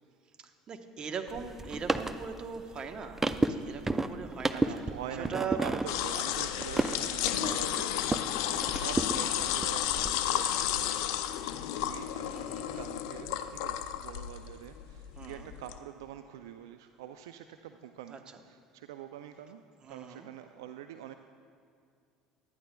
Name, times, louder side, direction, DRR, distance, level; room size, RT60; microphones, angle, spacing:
voice 1, 0.7-4.7 5.2-5.6 12.3-12.8 15.2-15.5 18.1-18.2 19.8-20.3, right 6 dB, 40° right, 6 dB, 1.0 m, -40 dB
sound 1, 1.3-8.3 8.6-10.1, right 2 dB, 15° right, 0.5 m, -33 dB
voice 2, 4.4-21.1, right 10 dB, 80° right, 8 dB, 0.4 m, -45 dB
sound 2, 5.9-15.8, left 11 dB, 70° left, 0.5 m, -32 dB
18.0 x 12.5 x 2.3 m, 2.4 s
hypercardioid pair, 70°, 2 cm